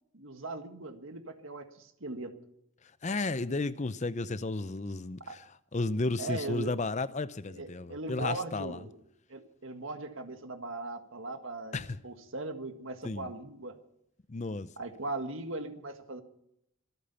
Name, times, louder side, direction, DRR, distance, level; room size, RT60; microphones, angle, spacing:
voice 1, 0.1-2.3 5.3-5.4 6.2-6.7 7.5-8.9 9.3-13.8 14.8-16.2, right 2 dB, 65° right, 1.8 m, -39 dB
voice 2, 3.0-5.2 5.7-8.8 11.7-12.0 13.0-13.3 14.3-14.7, left 3 dB, 35° left, 0.6 m, -33 dB
25.5 x 8.7 x 5.6 m
head